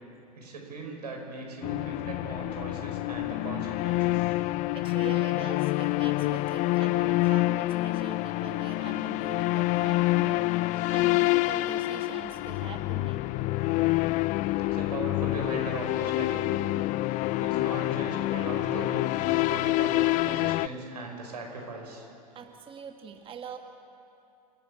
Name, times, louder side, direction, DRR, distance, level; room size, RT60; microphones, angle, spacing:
voice 1, 0.4-4.3 14.6-16.7 17.4-22.1, right 3 dB, 85° right, 1 dB, 5.3 m, -39 dB
sound 1, 1.6-20.7, left 18 dB, 40° left, 0.4 m, -27 dB
voice 2, 4.7-13.2 22.3-23.6, right 6 dB, 25° right, 5 dB, 1.4 m, -43 dB
27.5 x 11.0 x 8.9 m, 2.7 s
hypercardioid pair, 100°, 20 cm